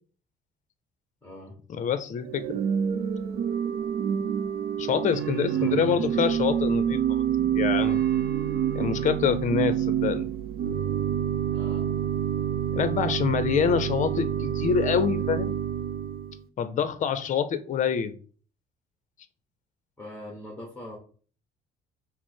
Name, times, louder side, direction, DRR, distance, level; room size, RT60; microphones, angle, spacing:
voice 1, 1.2-1.6 5.5-6.0 11.5-11.9 20.0-21.0, left 1 dB, 10° left, -1 dB, 1.3 m, -41 dB
voice 2, 1.8-2.6 4.8-7.2 7.5-8.0 8.7-10.3 12.7-15.6 16.6-18.1, left 7 dB, 50° left, 12 dB, 0.6 m, -26 dB
Organ / Church bell, 2.2-16.4, right 9 dB, 65° right, 0.5 m, -27 dB
5.8 x 2.0 x 4.4 m, 0.42 s
cardioid pair, 110°, 17 cm